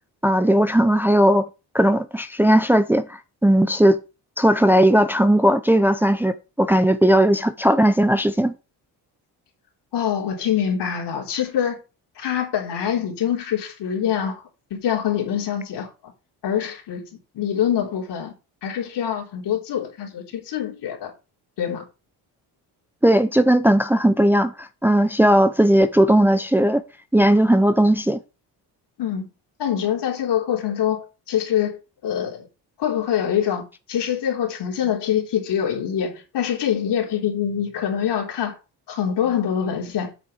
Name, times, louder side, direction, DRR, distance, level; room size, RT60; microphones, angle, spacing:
voice 1, 0.2-1.5 1.7-4.0 4.4-8.5 23.0-26.8 27.1-28.2, right 1 dB, 5° right, 0.6 m, -17 dB
voice 2, 9.9-11.8 12.2-14.4 14.7-16.1 16.4-18.3 18.6-21.1 21.6-21.8 29.0-29.3 29.6-32.5 32.8-38.6 38.9-40.1, left 9 dB, 70° left, 3.6 m, -25 dB
8.4 x 6.7 x 5.0 m
cardioid pair, 105°, 43 cm